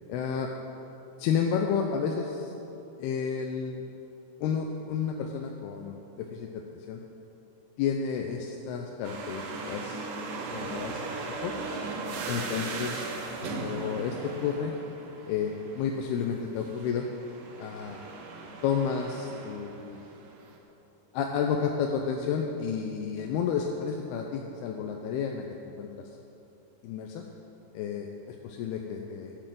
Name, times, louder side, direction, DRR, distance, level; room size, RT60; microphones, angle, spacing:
voice 1, 0.1-0.5 1.2-2.5 3.0-3.8 4.4-7.0 7.8-10.1 10.5-11.0 11.4-11.5 12.3-13.1 13.4-14.7 15.3-17.1 17.6-18.0 18.6-20.0 21.1-26.1 26.8-27.2 27.7-29.3, left 7 dB, 85° left, 2 dB, 2.7 m, -31 dB
sound 1, 9.0-20.6, right 3 dB, 65° right, 2.6 m, -38 dB
12.0 x 8.9 x 7.6 m, 2.9 s
omnidirectional pair, 4.5 m